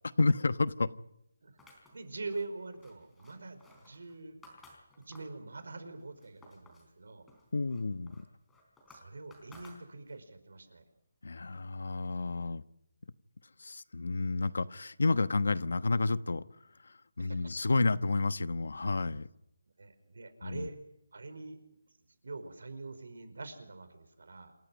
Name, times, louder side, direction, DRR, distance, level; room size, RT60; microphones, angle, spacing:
voice 1, 0.2-0.9 7.5-8.2 11.2-12.6 13.6-16.4 17.2-19.3 20.4-20.7, left 3 dB, 70° left, 13 dB, 1.2 m, -30 dB
sound 1, 1.6-5.4 5.9-6.9 7.3-10.3, left 2 dB, 5° left, 3.7 m, -58 dB
voice 2, 1.9-4.4 5.0-7.3 8.9-10.8 17.2-17.5 19.8-20.8 21.1-21.6 22.2-24.5, right 3 dB, 70° right, 10 dB, 5.1 m, -44 dB
28.0 x 15.0 x 9.3 m, 0.80 s
hypercardioid pair, 175°, 0 cm